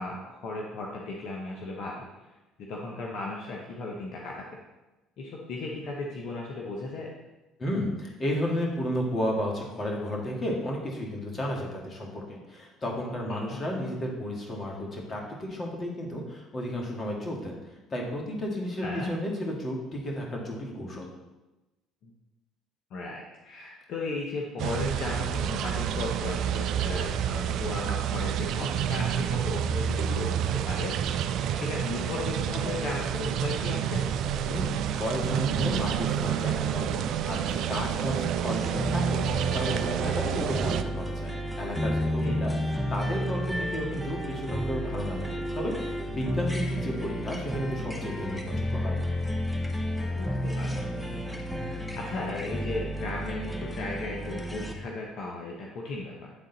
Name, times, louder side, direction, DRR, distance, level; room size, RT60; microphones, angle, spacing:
voice 1, 0.0-2.3 2.7-4.6 5.2-7.1 13.3-13.6 18.8-19.1 22.0-22.1 22.9-34.1 42.2-42.4 50.0-56.3, left 2 dB, 65° left, -1 dB, 0.9 m, -36 dB
voice 2, 7.6-17.5 17.9-21.1 34.5-41.3 41.6-49.0, equal, 35° left, 0 dB, 2.0 m, -33 dB
sound 1, 24.6-40.8, right 9 dB, 65° right, 0.3 m, -29 dB
sound 2, 38.4-54.7, equal, 5° left, 1.0 m, -32 dB
9.2 x 3.8 x 4.0 m, 1.1 s
hypercardioid pair, 65°, 0 cm